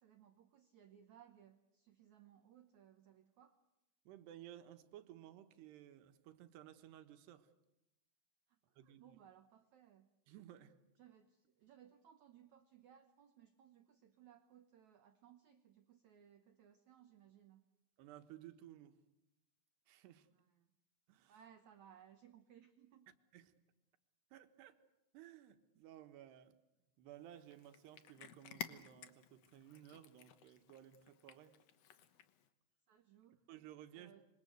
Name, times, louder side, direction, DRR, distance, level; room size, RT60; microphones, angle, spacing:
voice 1, 0.0-3.6 8.5-10.1 11.0-17.7 20.4-20.7 21.3-23.1 32.9-33.5 34.0-34.2, right 9 dB, 70° right, 8 dB, 1.8 m, -64 dB
voice 2, 4.1-7.5 8.8-9.2 10.3-10.8 18.0-19.0 19.9-20.3 21.1-21.4 23.3-23.5 24.3-24.8 25.1-26.6 27.0-31.6 33.5-34.2, right 12 dB, 90° right, 9 dB, 3.4 m, -57 dB
Cat, 27.3-32.5, left 9 dB, 75° left, 1.4 m, -54 dB
26.5 x 23.0 x 8.0 m, 0.90 s
omnidirectional pair, 4.6 m